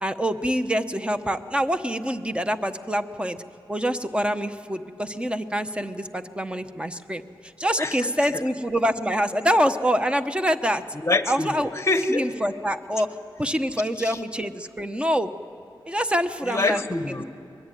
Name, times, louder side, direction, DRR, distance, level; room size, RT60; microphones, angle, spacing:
voice 1, 0.0-3.4 3.7-7.2 7.6-10.8 11.3-11.7 12.1-15.3 15.9-16.8, equal, 10° right, 9 dB, 1.0 m, -25 dB
voice 2, 7.8-8.1 10.9-12.3 14.0-14.2 16.4-17.2, left 2 dB, 30° left, 9 dB, 1.3 m, -25 dB
23.0 x 21.5 x 9.2 m, 2.4 s
wide cardioid pair, 90°, 9 cm